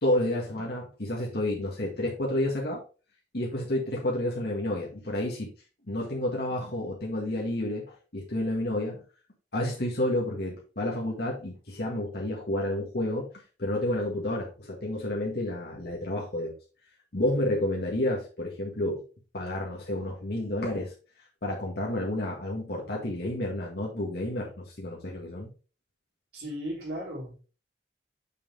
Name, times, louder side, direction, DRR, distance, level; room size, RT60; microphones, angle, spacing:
voice 1, 0.0-2.8 3.3-5.5 5.9-9.0 9.5-13.3 13.6-16.5 17.1-19.0 19.3-20.9 21.4-25.5, left 1 dB, 60° left, -3 dB, 1.7 m, -30 dB
voice 2, 26.3-27.5, equal, 60° right, -3 dB, 3.7 m, -36 dB
6.6 x 5.7 x 3.4 m, 0.35 s
head